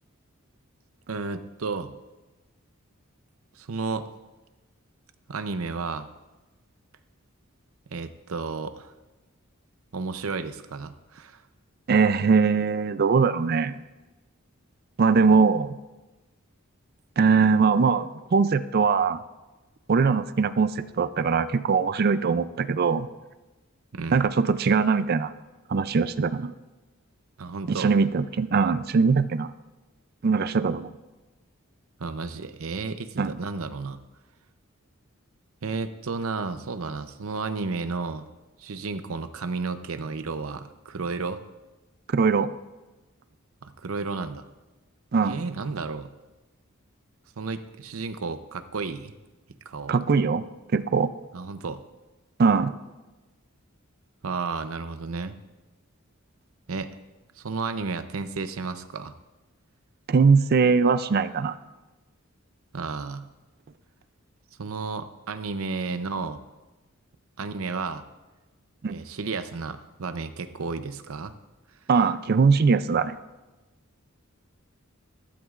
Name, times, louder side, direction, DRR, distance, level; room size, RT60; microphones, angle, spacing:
voice 1, 1.1-1.9 3.6-4.1 5.3-6.1 7.9-8.9 9.9-11.4 23.9-24.2 27.4-27.9 32.0-34.0 35.6-38.3 38.6-41.4 43.6-44.4 45.2-46.1 47.4-49.1 49.7-49.9 51.3-51.8 54.2-55.4 56.7-56.9 57.4-59.1 62.7-63.3 64.6-66.4 67.4-68.0 68.9-71.3, right 4 dB, 85° right, 11 dB, 0.7 m, -32 dB
voice 2, 11.9-13.8 15.0-15.7 17.2-19.2 19.9-23.1 24.1-25.3 25.7-26.5 27.7-29.5 30.2-30.9 33.2-33.3 42.1-42.6 45.1-45.4 49.9-50.5 50.7-51.1 52.4-52.7 60.1-61.6 68.8-69.0 71.9-73.1, right 5 dB, 45° right, 13 dB, 0.4 m, -21 dB
14.5 x 12.5 x 2.5 m, 1.1 s
head